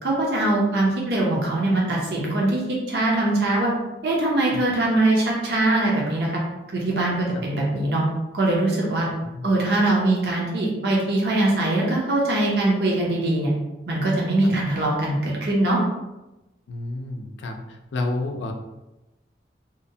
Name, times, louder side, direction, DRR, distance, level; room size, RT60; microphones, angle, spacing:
voice 1, 0.0-3.7 4.0-6.3 6.7-8.0 8.3-9.1 9.4-13.5 13.9-15.8, right 2 dB, 60° right, -3 dB, 0.6 m, -22 dB
voice 2, 16.7-17.6 17.9-18.5, left 2 dB, 85° left, 3 dB, 0.4 m, -29 dB
2.8 x 2.1 x 2.6 m, 0.99 s
head